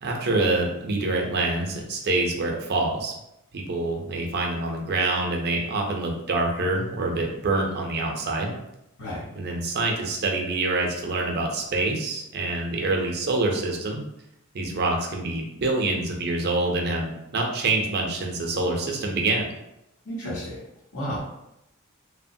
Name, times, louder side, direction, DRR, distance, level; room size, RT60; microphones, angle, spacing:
voice 1, 0.0-3.1 3.5-8.5 9.3-14.0 14.5-19.5, right 2 dB, 50° right, 1 dB, 0.5 m, -26 dB
voice 2, 20.0-20.6 20.9-21.2, equal, 90° left, -8 dB, 0.9 m, -32 dB
2.9 x 2.1 x 2.6 m, 0.85 s
head